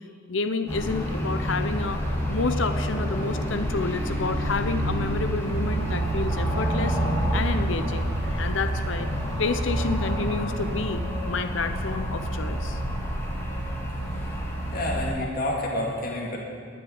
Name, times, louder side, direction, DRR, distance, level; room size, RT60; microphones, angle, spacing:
voice 1, 0.3-2.0 2.3-7.0 7.3-9.1 9.4-12.8 15.2-15.3, left 4 dB, 70° left, 9 dB, 0.8 m, -29 dB
sound 1, 0.7-15.1, equal, 15° left, 2.5 m, -28 dB
sound 2, 5.4-10.8, right 1 dB, 60° right, 2.9 m, -34 dB
voice 2, 14.7-16.4, left 1 dB, 50° left, -2 dB, 2.5 m, -29 dB
20.5 x 7.4 x 9.4 m, 2.2 s
head